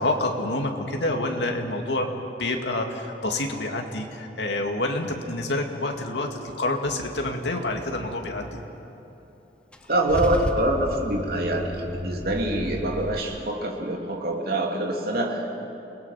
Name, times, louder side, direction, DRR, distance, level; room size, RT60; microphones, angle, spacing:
voice 1, 0.0-2.1 2.4-8.6, left 2 dB, 80° left, 3 dB, 2.2 m, -27 dB
Car / Engine starting / Idling, 9.7-13.2, equal, 5° left, 0.9 m, -32 dB
voice 2, 9.9-15.5, right 1 dB, 60° right, 0 dB, 2.9 m, -25 dB
29.0 x 20.0 x 5.8 m, 3.0 s
head